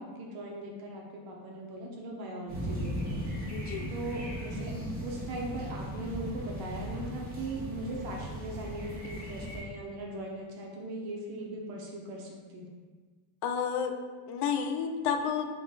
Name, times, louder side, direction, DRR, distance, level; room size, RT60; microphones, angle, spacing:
voice 1, 0.0-3.2 3.9-4.7 5.0-12.7, right 1 dB, 55° right, -1 dB, 0.7 m, -39 dB
sound 1, 2.5-9.6, equal, 20° right, 1.0 m, -37 dB
voice 2, 3.5-3.9 13.4-13.9 14.3-15.5, left 7 dB, 60° left, 6 dB, 0.5 m, -30 dB
3.8 x 2.3 x 3.9 m, 1.4 s
cardioid pair, 150°, 45 cm